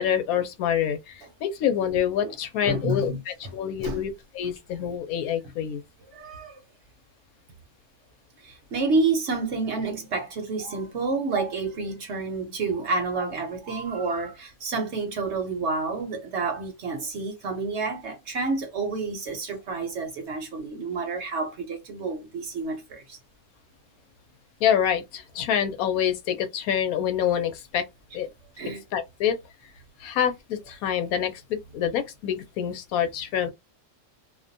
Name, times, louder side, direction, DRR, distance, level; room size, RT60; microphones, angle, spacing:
voice 1, 0.0-5.8 24.6-27.8 28.1-28.3 28.9-29.4 30.0-33.5, left 9 dB, 80° left, 1.0 m, -26 dB
voice 2, 2.7-3.2 3.8-4.0 6.1-6.6 8.4-23.2 28.6-28.8, right 3 dB, 60° right, 0.9 m, -29 dB
2.5 x 2.2 x 2.6 m
omnidirectional pair, 1.5 m